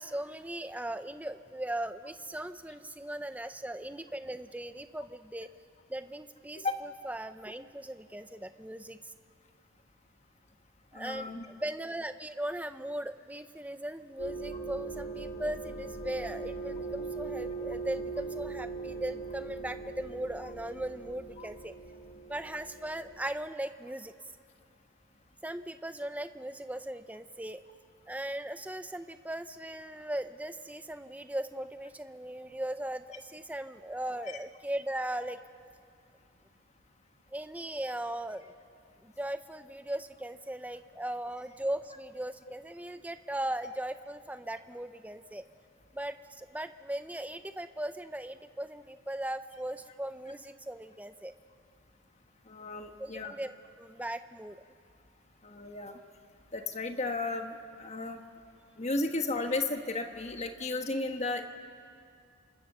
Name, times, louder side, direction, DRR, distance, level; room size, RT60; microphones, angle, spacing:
voice 1, 0.0-5.5 5.9-9.1 10.9-21.7 22.3-24.3 25.4-27.6 28.1-35.4 37.3-38.5 39.0-45.4 45.9-51.3 53.0-53.5 53.8-54.6, right 1 dB, 5° right, 10 dB, 0.6 m, -38 dB
voice 2, 10.9-11.5 21.4-21.5 52.5-53.3 55.4-56.0 56.5-58.2 58.8-61.4, left 2 dB, 30° left, 5 dB, 1.4 m, -34 dB
sound 1, 14.2-23.3, right 3 dB, 75° left, 5.1 m, -40 dB
29.0 x 25.0 x 6.8 m, 2.4 s
head